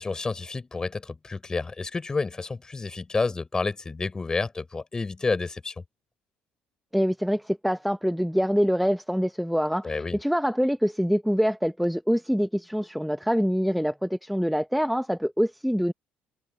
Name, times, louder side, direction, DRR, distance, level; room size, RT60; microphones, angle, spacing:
voice 1, 0.0-5.7 9.8-10.2, left 3 dB, 20° left, 4.9 m, -30 dB
voice 2, 6.9-15.9, equal, ahead, 0.6 m, -25 dB
cardioid pair, 105°, 3 cm